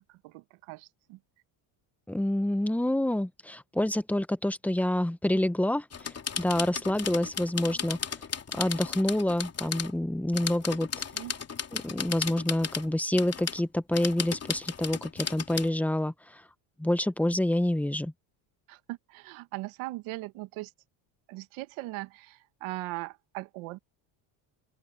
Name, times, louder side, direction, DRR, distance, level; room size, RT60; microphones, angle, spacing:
voice 1, 0.1-1.2 11.1-11.3 18.7-20.7 21.3-23.8, right 20 dB, 85° right, 1.7 m, -39 dB
voice 2, 2.1-8.0 8.5-10.9 11.7-16.4 16.8-18.1, left 1 dB, 5° left, 1.0 m, -28 dB
sound 1, 5.9-9.9 10.3-12.9 13.1-13.6 13.9-15.7, left 7 dB, 30° left, 3.3 m, -35 dB
open air
cardioid pair, 110°, 47 cm